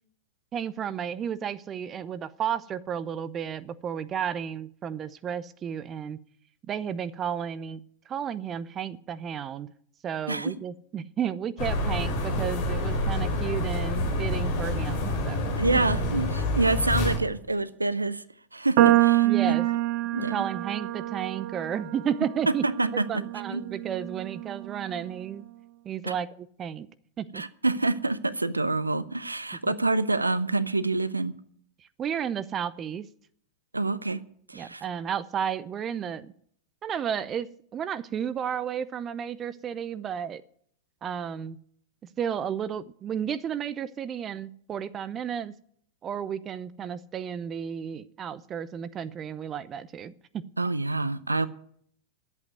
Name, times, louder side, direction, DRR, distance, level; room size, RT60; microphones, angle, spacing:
voice 1, 0.5-6.2 6.7-9.7 10.0-15.8 19.2-19.7 20.2-22.7 23.1-25.4 25.8-26.9 27.2-27.4 29.7-29.8 31.8-33.1 34.5-36.3 36.8-40.4 41.0-41.6 42.0-45.5 46.0-50.5, right 8 dB, 25° right, 0.6 m, -33 dB
sound 1, 11.6-17.2, left 1 dB, 50° left, 3.2 m, -27 dB
voice 2, 15.6-18.2 18.5-19.6 20.1-20.5 22.6-22.9 23.5-23.6 26.0-26.1 27.3-31.3 33.7-34.2 34.5-34.8 50.6-51.5, right 2 dB, 80° right, 0.6 m, -27 dB
sound 2, 18.8-25.1, right 15 dB, 50° right, 0.8 m, -26 dB
11.0 x 8.1 x 9.3 m
figure-of-eight pair, 90°, 0 cm